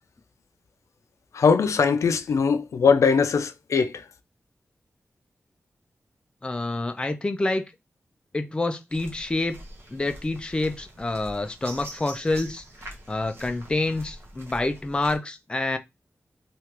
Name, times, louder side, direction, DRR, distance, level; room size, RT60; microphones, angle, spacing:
voice 1, 1.3-4.1, left 5 dB, 80° left, 0.4 m, -21 dB
voice 2, 6.4-7.7 8.3-9.6 9.9-12.6 13.1-15.8, left 2 dB, 20° left, 0.4 m, -27 dB
sound 1, 8.9-15.2, right 1 dB, 50° right, 0.8 m, -44 dB
3.2 x 2.4 x 2.9 m
wide cardioid pair, 145°, 5 cm